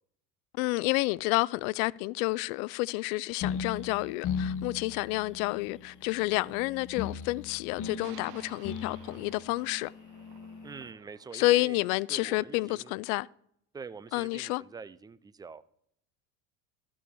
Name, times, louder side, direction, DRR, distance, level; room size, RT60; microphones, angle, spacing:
voice 1, 0.5-9.9 11.3-13.3 14.1-14.6, left 21 dB, 70° left, 0.5 m, -29 dB
sound 1, 3.4-10.9, left 7 dB, 45° left, 1.1 m, -38 dB
sound 2, 5.3-5.4 8.0-12.4, right 12 dB, 55° right, 1.0 m, -55 dB
voice 2, 10.6-11.8 12.1-12.9 13.7-15.6, right 5 dB, 10° right, 0.3 m, -45 dB
12.5 x 4.8 x 7.0 m
supercardioid pair, 90°, 44 cm